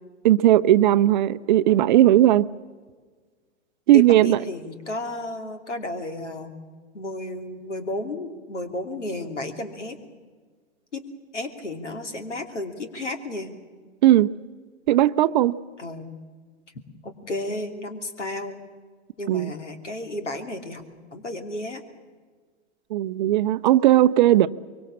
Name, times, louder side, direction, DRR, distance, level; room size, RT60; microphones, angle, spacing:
voice 1, 0.2-2.5 3.9-4.4 14.0-14.3 14.9-15.6 19.3-19.5 22.9-24.5, right 13 dB, 40° right, 14 dB, 0.6 m, -17 dB
voice 2, 3.9-6.5 6.9-10.0 10.9-11.1 11.3-13.5 15.8-16.1 17.0-18.6 19.2-20.8 21.1-21.8, left 1 dB, 75° left, 7 dB, 2.9 m, -33 dB
24.0 x 23.5 x 7.3 m, 1.5 s
figure-of-eight pair, 105°, 36 cm